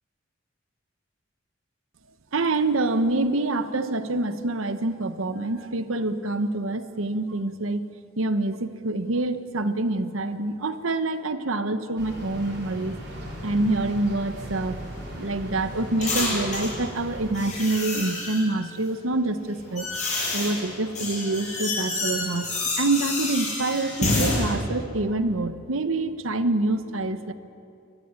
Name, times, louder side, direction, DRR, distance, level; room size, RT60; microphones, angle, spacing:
voice 1, 2.3-7.8 8.2-13.0 13.4-14.8 15.1-19.9 20.3-22.5 22.8-27.3, right 2 dB, 90° right, 10 dB, 1.1 m, -26 dB
sound 1, 12.0-17.3, equal, 55° right, 4.5 m, -38 dB
sound 2, 14.4-16.8 17.3-18.5 19.3-24.4, left 2 dB, 35° left, 6.5 m, -29 dB
22.0 x 13.5 x 9.7 m, 2.5 s
head